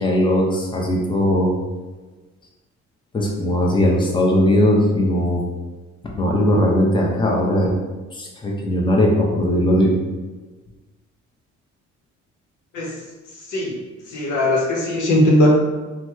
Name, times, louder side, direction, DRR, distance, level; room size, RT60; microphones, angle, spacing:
voice 1, 0.0-1.5 3.1-5.4 6.2-7.7 8.1-9.9, equal, 15° left, -2 dB, 0.6 m, -18 dB
voice 2, 13.4-13.8 14.1-15.5, left 1 dB, 80° left, -1 dB, 0.8 m, -19 dB
2.9 x 2.1 x 3.4 m, 1.2 s
cardioid pair, 90°, 30 cm